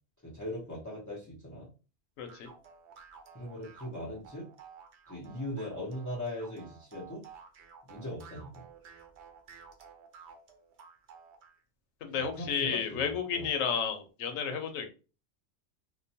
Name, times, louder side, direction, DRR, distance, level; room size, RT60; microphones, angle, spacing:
voice 1, 0.2-1.7 3.3-4.5 5.1-7.2 7.9-8.6 12.1-13.5, left 1 dB, 20° left, -7 dB, 0.4 m, -40 dB
voice 2, 2.2-2.5 12.0-14.9, left 7 dB, 90° left, 7 dB, 1.0 m, -32 dB
sound 1, 2.3-11.6, right 6 dB, 65° right, 0.8 m, -53 dB
2.9 x 2.1 x 2.7 m, 0.33 s
omnidirectional pair, 1.3 m